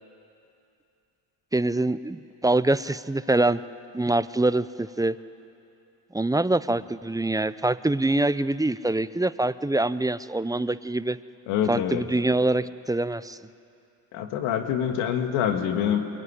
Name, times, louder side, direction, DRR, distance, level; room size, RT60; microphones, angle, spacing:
voice 1, 1.5-3.6 3.9-5.2 6.1-11.2 11.7-13.4, right 2 dB, 10° right, 15 dB, 0.6 m, -24 dB
voice 2, 11.5-12.0 14.1-16.0, left 9 dB, 90° left, 5 dB, 1.9 m, -25 dB
23.0 x 20.0 x 9.9 m, 2.7 s
supercardioid pair, 60°, 48 cm